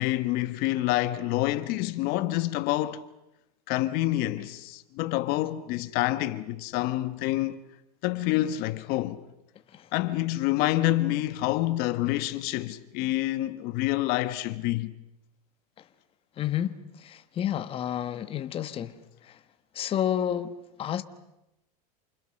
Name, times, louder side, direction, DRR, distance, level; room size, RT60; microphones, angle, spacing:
voice 1, 0.0-3.0 3.7-7.6 8.0-9.2 9.9-14.9, left 16 dB, 50° left, 1.3 m, -27 dB
voice 2, 16.4-19.0 19.2-19.4 19.7-21.0, left 10 dB, 25° left, 1.2 m, -30 dB
29.0 x 28.0 x 6.5 m
supercardioid pair, 135°, 20 cm